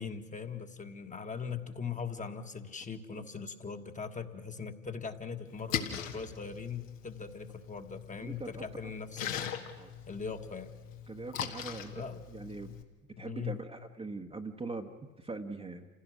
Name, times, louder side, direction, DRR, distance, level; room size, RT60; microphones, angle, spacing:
voice 1, 0.0-9.4 10.1-10.7 11.9-12.2 13.2-13.5, left 5 dB, 20° left, 6 dB, 1.5 m, -40 dB
Splash splatter, 5.5-12.8, left 8 dB, 75° left, 1.8 m, -41 dB
voice 2, 8.2-8.6 9.8-9.9 11.1-11.9 12.3-12.7 13.2-15.9, right 3 dB, 15° right, 5 dB, 1.2 m, -42 dB
29.0 x 16.5 x 6.3 m, 1.3 s
figure-of-eight pair, 70°, 39 cm